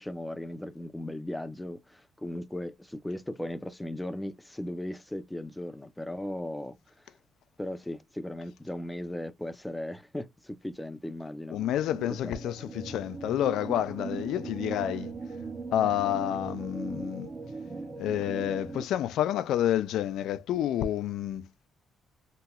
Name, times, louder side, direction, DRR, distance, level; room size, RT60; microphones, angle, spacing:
voice 1, 0.0-7.0 7.6-11.6 12.1-12.3, left 1 dB, 10° left, 0.5 m, -37 dB
voice 2, 11.5-15.1 15.7-17.3 18.0-21.5, left 11 dB, 80° left, 0.3 m, -29 dB
sound 1, 11.5-18.8, right 4 dB, 35° right, 0.6 m, -39 dB
3.0 x 2.8 x 2.2 m
cardioid pair, 90°, 0 cm